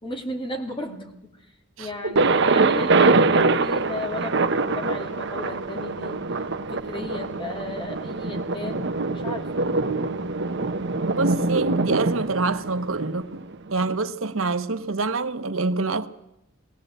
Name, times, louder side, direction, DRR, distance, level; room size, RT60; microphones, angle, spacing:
voice 1, 0.0-1.3 1.8-6.2 6.7-9.8, left 1 dB, 25° left, 2.8 m, -34 dB
voice 2, 1.8-2.4 11.1-13.4 13.7-16.1, right 3 dB, 85° right, 1.1 m, -26 dB
Thunder, 2.2-14.0, right 3 dB, 60° right, 1.0 m, -24 dB
20.0 x 16.5 x 8.1 m
head